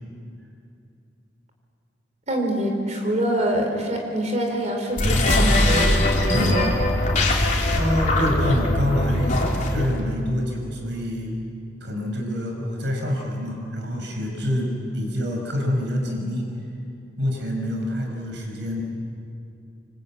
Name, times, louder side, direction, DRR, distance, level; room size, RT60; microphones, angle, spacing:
voice 1, 2.3-6.8, right 1 dB, 40° right, 2 dB, 4.2 m, -25 dB
sound 1, 4.9-10.0, left 1 dB, 40° left, 3.8 m, -21 dB
voice 2, 7.7-11.3 11.8-16.5 17.2-18.8, left 1 dB, 70° right, 1 dB, 5.2 m, -26 dB
27.5 x 25.0 x 8.7 m, 2.6 s
head